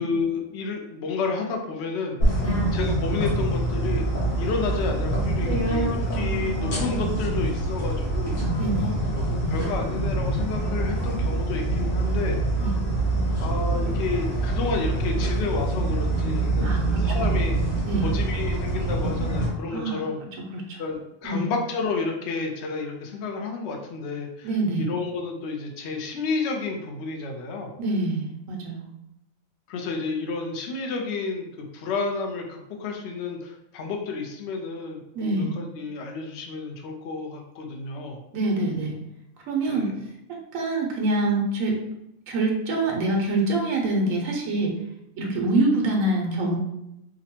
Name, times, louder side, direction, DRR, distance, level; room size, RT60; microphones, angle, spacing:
voice 1, 0.0-2.2 2.7-4.0 4.4-8.4 8.8-12.4 13.4-17.6 18.0-20.2 20.8-24.5 24.8-27.7 29.7-38.2 39.7-40.0, left 4 dB, 60° left, 2 dB, 0.8 m, -31 dB
sound 1, 2.2-19.5, right 2 dB, 80° left, 1.7 m, -25 dB
voice 2, 8.6-8.9 12.6-12.7 16.6-17.4 17.8-18.1 19.7-20.0 20.5-20.8 21.2-21.5 24.4-24.9 27.8-28.9 35.1-35.5 38.3-38.9 39.5-39.9 40.5-41.8 42.3-44.7 45.2-46.6, right 2 dB, 80° right, -1 dB, 1.2 m, -25 dB
4.9 x 2.2 x 2.8 m, 0.85 s
omnidirectional pair, 1.4 m